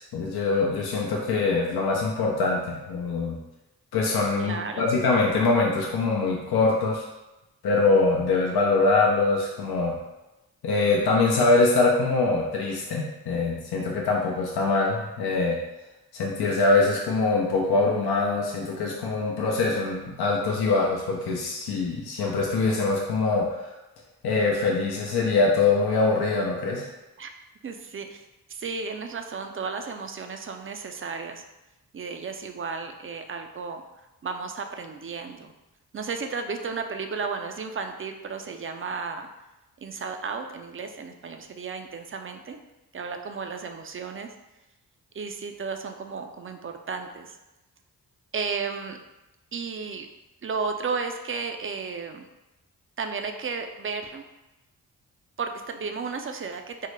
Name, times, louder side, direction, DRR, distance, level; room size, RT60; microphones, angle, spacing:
voice 1, 0.0-3.4 3.9-7.1 7.6-9.9 10.6-15.6 16.1-23.5 24.2-26.8, left 3 dB, 70° left, -2 dB, 0.7 m, -23 dB
voice 2, 4.4-4.9 27.2-27.3 27.6-28.2 28.5-31.4 31.9-33.8 34.2-35.5 35.9-39.3 39.8-42.6 42.9-44.3 45.1-47.4 48.3-49.0 49.5-50.1 50.4-52.3 53.0-54.2 55.4-56.9, right 5 dB, 35° right, 6 dB, 0.4 m, -33 dB
3.7 x 2.1 x 3.2 m, 0.99 s
supercardioid pair, 40°, 39 cm